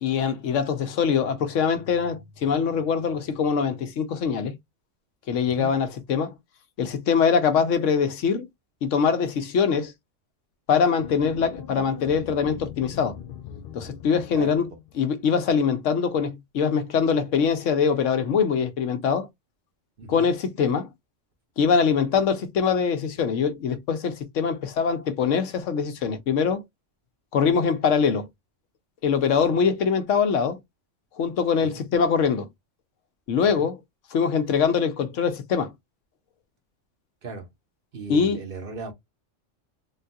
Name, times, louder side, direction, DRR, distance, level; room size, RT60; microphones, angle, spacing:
voice 1, 0.0-4.6 5.3-6.4 6.8-8.5 8.8-9.9 10.7-13.2 13.7-14.7 15.0-19.3 20.1-20.9 21.6-26.6 27.3-28.3 29.0-30.6 31.2-32.5 33.3-33.8 34.1-35.7 38.1-38.4, left 6 dB, 80° left, 1.1 m, -23 dB
sound 1, 11.0-15.3, left 9 dB, 60° left, 0.7 m, -41 dB
voice 2, 20.0-20.3 29.5-29.6 31.6-31.8 33.6-33.7 37.2-37.5 37.9-38.9, right 4 dB, 50° right, 1.1 m, -37 dB
3.7 x 2.3 x 2.6 m
omnidirectional pair, 1.3 m